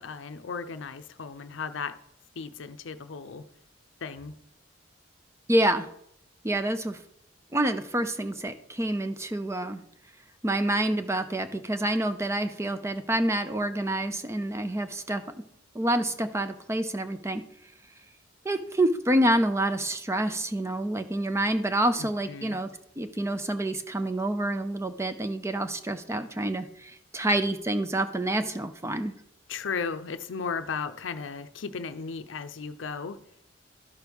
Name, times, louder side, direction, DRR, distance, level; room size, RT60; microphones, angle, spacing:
voice 1, 0.0-2.0 2.4-3.4 4.0-4.3 22.0-22.6 29.5-33.2, left 5 dB, 70° left, 0.5 m, -35 dB
voice 2, 5.5-5.9 6.4-7.0 7.5-9.8 10.4-15.2 15.7-17.4 18.4-22.7 23.0-29.1, right 1 dB, 15° right, 0.5 m, -27 dB
12.5 x 6.1 x 3.5 m
head